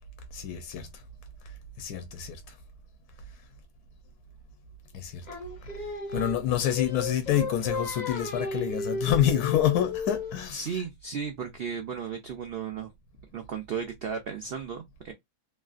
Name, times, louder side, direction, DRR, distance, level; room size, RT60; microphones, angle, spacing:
voice 1, 0.3-1.0 1.8-2.6 4.9-5.3 6.1-10.7, left 10 dB, 80° left, 1.1 m, -27 dB
Singing, 5.3-10.5, left 4 dB, 40° left, 0.7 m, -34 dB
voice 2, 10.5-12.9 13.3-15.1, right 6 dB, 80° right, 0.5 m, -35 dB
3.1 x 2.3 x 2.4 m
omnidirectional pair, 1.6 m